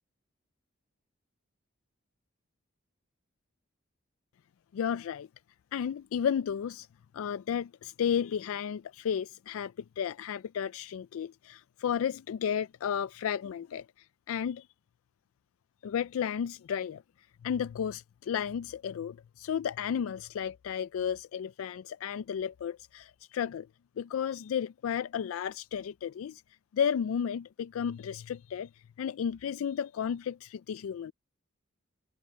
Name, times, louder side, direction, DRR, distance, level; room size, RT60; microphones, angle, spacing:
voice 1, 4.7-5.3 5.7-6.9 7.1-14.7 15.8-17.0 17.4-23.7 24.0-26.4 26.7-28.7 29.0-31.1, left 8 dB, 85° left, 0.3 m, -33 dB
head